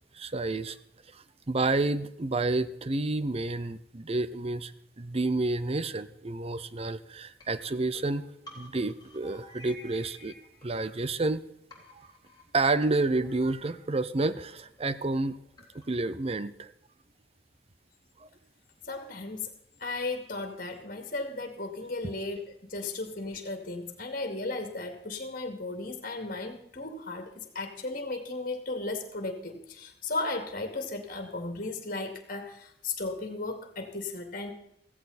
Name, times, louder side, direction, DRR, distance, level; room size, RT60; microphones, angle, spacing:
voice 1, 0.2-0.8 1.5-4.7 5.0-8.2 8.6-10.4 10.6-11.4 12.0-12.1 12.5-15.4 15.9-16.7 18.2-18.3, right 2 dB, 35° right, 15 dB, 0.7 m, -29 dB
sound 1, 7.4-11.4 11.7-16.1, equal, 25° left, 3.2 m, -54 dB
voice 2, 18.8-19.5 19.8-22.4 22.7-34.5, left 3 dB, 50° left, 5 dB, 2.5 m, -35 dB
16.0 x 15.0 x 4.3 m, 0.79 s
head